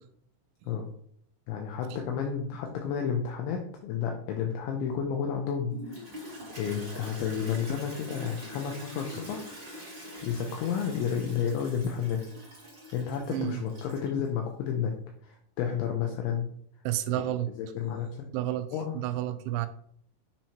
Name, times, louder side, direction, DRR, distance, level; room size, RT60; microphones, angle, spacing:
voice 1, 1.5-9.5 10.2-12.3 12.9-14.9 15.2-16.5 17.1-17.2 17.6-18.3 18.7-19.0, left 7 dB, 80° left, 2 dB, 3.0 m, -31 dB
Toilet flush, 5.7-14.2, equal, 25° right, 1.1 m, -44 dB
voice 2, 13.3-13.6 16.8-17.5 18.3-19.7, right 13 dB, 85° right, 11 dB, 2.8 m, -30 dB
7.3 x 7.2 x 3.0 m, 0.66 s
omnidirectional pair, 5.7 m